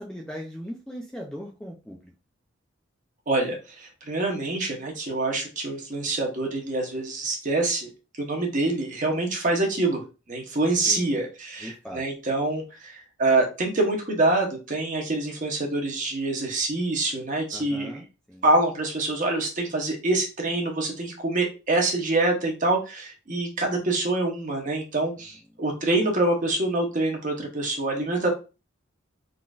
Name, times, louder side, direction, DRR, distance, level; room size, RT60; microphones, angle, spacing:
voice 1, 0.0-2.1 10.9-11.2 11.6-12.0 17.5-18.4, equal, 5° left, 0 dB, 0.3 m, -39 dB
voice 2, 3.3-7.9 8.2-10.0 10.3-18.0 18.4-28.3, right 2 dB, 40° right, 1 dB, 0.8 m, -26 dB
3.7 x 2.5 x 2.3 m, 0.31 s
head